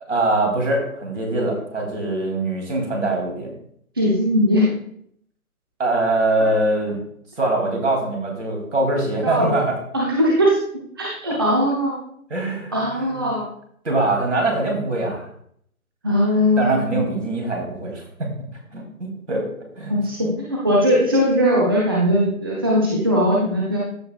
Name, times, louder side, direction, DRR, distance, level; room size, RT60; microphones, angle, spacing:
voice 1, 0.1-3.5 5.8-7.0 7.4-9.8 12.3-13.3 13.8-15.3 16.6-18.3 18.7-19.5 19.8-20.0, right 2 dB, 55° right, 1 dB, 2.7 m, -23 dB
voice 2, 4.0-4.7 9.2-9.6 9.9-10.6 11.0-11.9 12.7-13.4 16.0-16.7 19.9-23.8, equal, 15° right, -4 dB, 0.8 m, -19 dB
14.5 x 5.1 x 2.3 m, 0.67 s
figure-of-eight pair, 150°, 44 cm